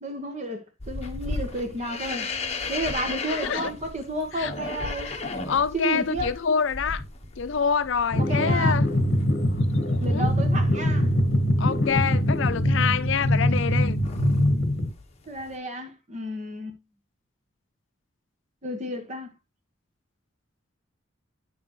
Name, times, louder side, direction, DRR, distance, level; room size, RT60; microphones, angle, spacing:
voice 1, 0.0-2.3 2.7-5.1 5.7-6.3 8.2-8.8 10.0-11.1 15.3-16.8 18.6-19.3, right 1 dB, 35° right, 1.5 m, -32 dB
sound 1, 0.8-13.7 14.0-14.5 14.9-15.6, left 3 dB, 30° left, 1.4 m, -36 dB
voice 2, 3.3-3.7 4.3-4.5 5.1-5.2 5.5-7.0 7.4-8.8 10.1-10.3 11.6-14.0, left 6 dB, 70° left, 0.5 m, -26 dB
sound 2, 8.1-14.9, equal, 55° left, 1.4 m, -23 dB
10.0 x 6.9 x 3.1 m
head